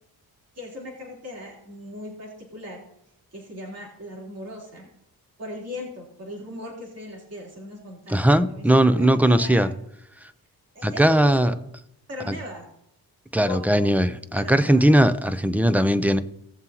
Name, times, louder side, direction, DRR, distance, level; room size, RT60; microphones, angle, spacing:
voice 1, 0.5-2.8 3.3-4.9 5.4-9.8 10.7-11.5 12.1-12.7 13.4-13.9 14.3-14.9, left 1 dB, 40° right, -3 dB, 3.8 m, -38 dB
voice 2, 8.1-9.7 10.8-11.5 12.3-12.4 13.3-16.2, right 1 dB, 5° right, 12 dB, 0.6 m, -19 dB
18.0 x 7.4 x 3.0 m, 0.79 s
cardioid pair, 95°, 37 cm